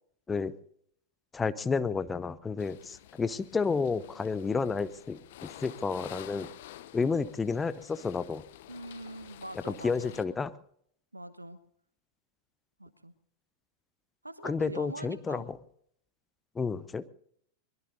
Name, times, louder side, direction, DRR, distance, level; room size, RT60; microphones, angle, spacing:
voice 1, 1.3-6.5 6.9-8.4 9.6-10.5 14.4-15.6 16.5-17.1, left 4 dB, 15° left, 14 dB, 0.7 m, -31 dB
sound 1, 2.6-10.2, left 14 dB, 55° left, 0.9 m, -50 dB
voice 2, 8.7-10.2 11.1-11.6 12.8-13.1 14.2-15.5, right 1 dB, 85° right, 16 dB, 1.1 m, -43 dB
23.0 x 21.0 x 2.7 m, 0.68 s
figure-of-eight pair, 90°, 0 cm